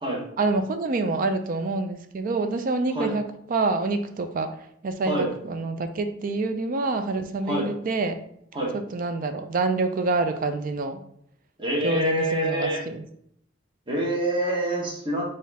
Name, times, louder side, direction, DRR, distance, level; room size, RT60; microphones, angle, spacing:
voice 1, 0.4-4.5 4.8-8.2 8.7-11.0 11.8-13.0, right 3 dB, 45° right, 8 dB, 0.4 m, -27 dB
voice 2, 11.6-12.8 13.9-15.2, right 1 dB, 25° right, -2 dB, 1.0 m, -26 dB
4.1 x 2.5 x 4.0 m, 0.70 s
head